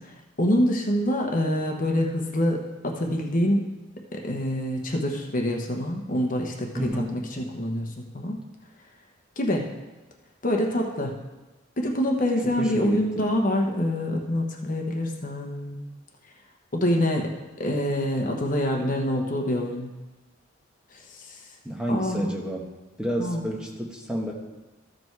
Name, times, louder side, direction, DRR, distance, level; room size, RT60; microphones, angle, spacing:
voice 1, 0.4-3.6 4.1-6.9 7.3-8.4 9.4-9.7 10.4-11.2 11.8-15.8 16.7-19.9 21.1-21.4 21.9-22.3 23.2-23.4, left 1 dB, 40° left, 2 dB, 1.0 m, -26 dB
voice 2, 6.7-7.2 12.5-13.2 21.6-22.7 23.0-24.3, equal, 5° right, -2 dB, 1.2 m, -30 dB
14.0 x 5.2 x 4.6 m, 1.1 s
head